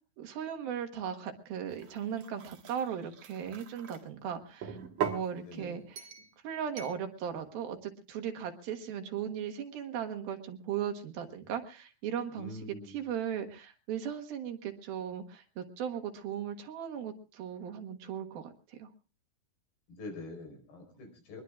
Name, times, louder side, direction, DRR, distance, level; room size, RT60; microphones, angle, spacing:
voice 1, 0.2-4.8 5.0-6.0 6.4-18.9, right 8 dB, 75° right, 5 dB, 3.3 m, -37 dB
sound 1, 1.7-4.0 4.6-5.3 6.0-6.3 6.8-7.0, right 8 dB, 50° right, 2.0 m, -39 dB
voice 2, 5.4-5.8 12.3-13.0 19.9-21.4, left 2 dB, 80° left, 5 dB, 6.4 m, -45 dB
23.5 x 21.0 x 2.4 m, 0.33 s
omnidirectional pair, 4.4 m